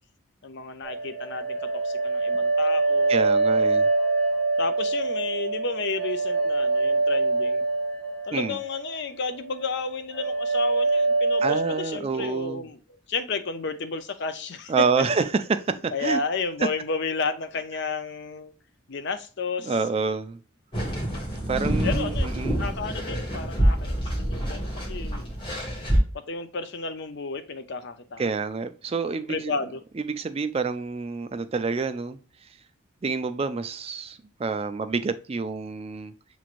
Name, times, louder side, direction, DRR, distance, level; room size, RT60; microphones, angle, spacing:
voice 1, 0.4-3.2 4.6-7.6 8.3-12.8 13.1-14.7 15.9-18.5 18.9-19.7 21.8-22.3 22.6-25.3 26.3-28.3 29.3-29.8, left 4 dB, 55° left, 0.6 m, -32 dB
sound 1, 0.8-9.0 9.3-9.8 10.1-11.9, right 3 dB, 75° left, 1.1 m, -24 dB
voice 2, 3.1-3.9 8.3-8.6 11.4-12.6 14.7-16.2 16.6-16.7 19.6-20.4 21.5-22.6 28.2-29.5 30.0-32.2 33.0-36.1, right 4 dB, 30° right, 0.3 m, -27 dB
sound 2, 20.7-26.0, right 1 dB, 25° left, 1.5 m, -26 dB
7.0 x 3.1 x 2.5 m
head